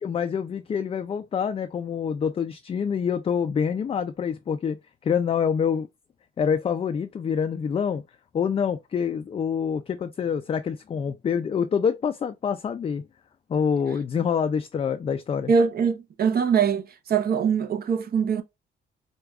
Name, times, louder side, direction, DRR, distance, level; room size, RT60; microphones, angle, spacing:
voice 1, 0.0-4.8 5.0-5.9 6.4-8.0 8.3-13.0 13.5-15.5, left 7 dB, 30° left, 0.3 m, -26 dB
voice 2, 15.5-18.4, right 6 dB, 50° right, 0.8 m, -23 dB
4.7 x 2.3 x 2.3 m
cardioid pair, 90°, 20 cm